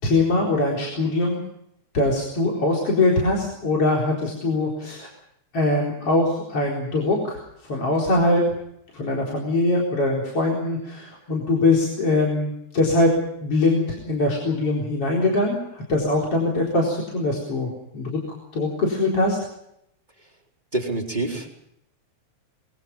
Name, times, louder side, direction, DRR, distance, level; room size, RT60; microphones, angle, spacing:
voice 1, 0.0-1.4 1.9-5.1 5.5-7.4 7.7-8.4 8.9-13.1 13.4-18.2 18.5-19.4, left 2 dB, 50° left, -2 dB, 5.1 m, -22 dB
voice 2, 20.7-21.5, right 2 dB, 15° right, 0 dB, 4.0 m, -26 dB
25.5 x 23.0 x 5.6 m, 0.78 s
omnidirectional pair, 3.3 m